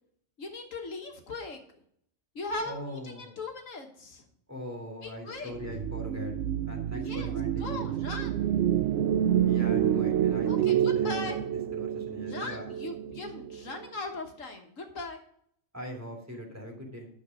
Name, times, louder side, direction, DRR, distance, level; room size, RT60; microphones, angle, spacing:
voice 1, 0.4-1.6 2.3-4.3 5.0-5.5 6.9-8.5 10.5-11.4 12.3-15.2, left 3 dB, 75° left, 3 dB, 1.7 m, -39 dB
voice 2, 2.6-3.3 4.5-6.3 6.7-8.0 9.5-11.3 11.7-12.7 15.7-17.1, equal, 10° right, 0 dB, 3.0 m, -41 dB
sound 1, 5.5-13.9, right 10 dB, 65° right, 0.8 m, -28 dB
10.5 x 6.6 x 5.1 m, 0.68 s
omnidirectional pair, 1.4 m